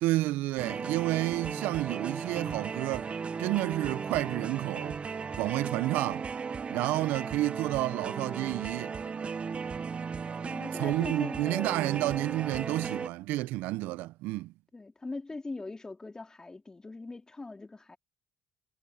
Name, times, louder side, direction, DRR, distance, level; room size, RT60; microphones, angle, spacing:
voice 1, 0.0-3.1 3.4-5.0 5.4-6.3 6.7-8.9 10.8-14.5, right 17 dB, 75° right, 0.9 m, -30 dB
sound 1, 0.6-13.1, right 5 dB, 40° right, 1.1 m, -36 dB
voice 2, 5.6-5.9 6.9-7.1 10.4-11.8 14.7-18.0, left 3 dB, 20° left, 2.7 m, -41 dB
hypercardioid pair, 55°, 3 cm